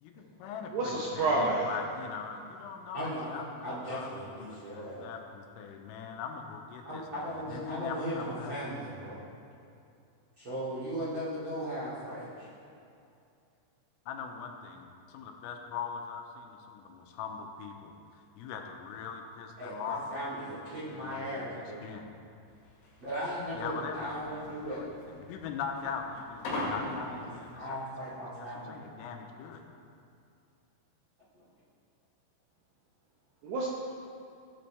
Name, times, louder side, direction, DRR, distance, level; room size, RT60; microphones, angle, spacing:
voice 1, 0.0-0.7 1.1-3.0 3.3-6.8 7.5-8.6 14.1-17.9 18.4-20.0 21.1-21.2 21.8-22.1 23.6-24.1 24.7-24.9 25.3-27.1 28.4-29.6, left 6 dB, 90° left, 3 dB, 3.5 m, -41 dB
voice 2, 0.7-1.7 33.4-33.7, right 2 dB, 75° right, -4 dB, 2.5 m, -28 dB
voice 3, 2.9-5.1 6.8-9.2 10.4-12.5 19.6-21.8 23.0-24.8 26.9-28.8, equal, 45° right, -9 dB, 1.7 m, -37 dB
sound 1, 22.5-27.5, left 2 dB, 55° left, 3.0 m, -37 dB
17.0 x 8.8 x 3.4 m, 2.5 s
omnidirectional pair, 6.0 m